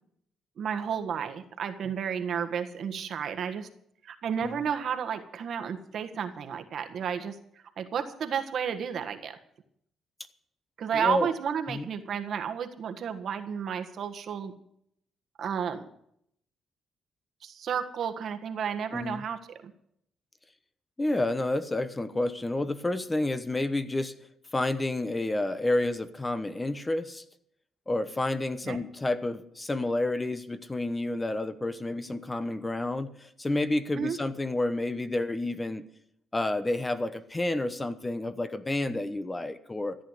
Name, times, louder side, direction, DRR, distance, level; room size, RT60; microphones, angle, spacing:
voice 1, 0.6-3.7 4.0-7.4 7.8-9.4 10.8-14.5 15.4-15.8 17.4-19.7 28.6-28.8 33.9-34.2, right 7 dB, 60° right, 7 dB, 1.5 m, -32 dB
voice 2, 10.9-11.3 11.7-11.8 18.9-19.2 21.0-24.1 24.5-27.2 27.9-33.1 33.4-35.8 36.3-40.0, left 2 dB, 20° left, 12 dB, 1.0 m, -30 dB
14.0 x 9.1 x 8.0 m, 0.72 s
cardioid pair, 90°, 0 cm